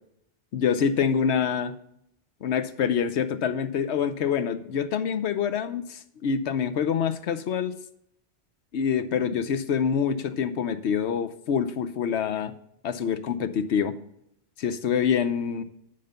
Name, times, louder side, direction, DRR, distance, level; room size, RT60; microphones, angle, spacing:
voice 1, 0.5-1.7 2.4-7.7 8.7-12.5 12.8-13.9 14.6-15.6, left 7 dB, 75° left, 12 dB, 1.0 m, -26 dB
10.5 x 3.8 x 6.5 m, 0.76 s
omnidirectional pair, 1.2 m